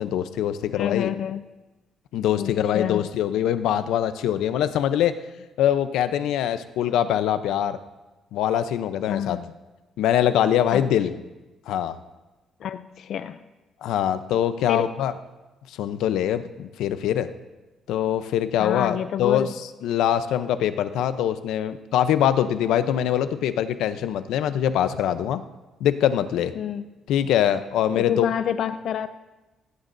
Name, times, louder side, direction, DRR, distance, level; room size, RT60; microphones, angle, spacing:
voice 1, 0.0-1.1 2.1-5.1 5.6-7.8 8.3-9.4 10.0-11.1 11.7-12.0 13.8-15.1 15.7-17.3 17.9-19.5 19.8-25.4 25.8-26.5 27.1-28.3, left 10 dB, 90° left, 11 dB, 0.7 m, -23 dB
voice 2, 0.8-1.4 2.4-3.1 9.1-9.4 10.7-10.9 12.6-13.4 14.7-14.9 18.6-19.5 26.6-26.8 28.0-29.1, left 9 dB, 55° left, 11 dB, 0.4 m, -28 dB
18.0 x 16.5 x 2.7 m, 1.1 s
cardioid pair, 170°, 0 cm